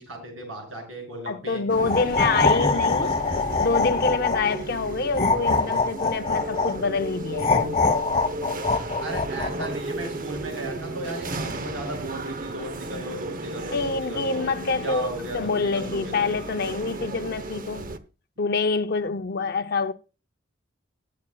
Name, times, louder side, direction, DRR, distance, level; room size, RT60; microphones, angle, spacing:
voice 1, 0.0-1.6 2.0-3.1 9.0-14.5 14.8-16.3, right 1 dB, 90° right, 6.6 m, -36 dB
voice 2, 1.3-3.1 3.6-8.0 13.7-17.9 18.4-19.9, left 4 dB, 55° left, 0.6 m, -26 dB
sound 1, 1.7-18.0, right 2 dB, 45° right, 0.8 m, -34 dB
sound 2, 1.8-4.6 5.1-6.8 7.4-9.7, left 3 dB, 35° left, 1.1 m, -23 dB
21.5 x 8.5 x 2.3 m
head